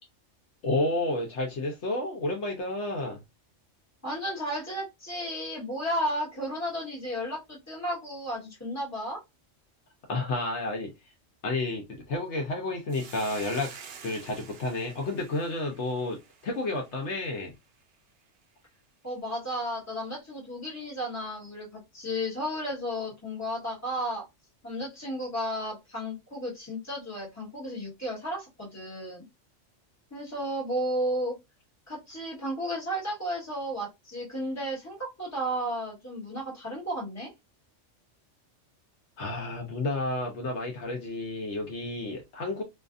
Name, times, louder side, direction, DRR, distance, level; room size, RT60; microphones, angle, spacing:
voice 1, 0.6-3.2 10.1-10.9 11.4-13.7 14.0-16.2 16.4-17.5 39.2-42.6, left 2 dB, 70° left, 1 dB, 1.0 m, -31 dB
voice 2, 4.0-9.2 19.0-24.2 24.6-29.2 30.1-31.4 31.9-37.3, equal, 15° left, -4 dB, 1.3 m, -33 dB
Hiss, 12.9-17.4, right 6 dB, 65° right, 0.7 m, -48 dB
2.7 x 2.4 x 2.4 m, 0.21 s
omnidirectional pair, 1.3 m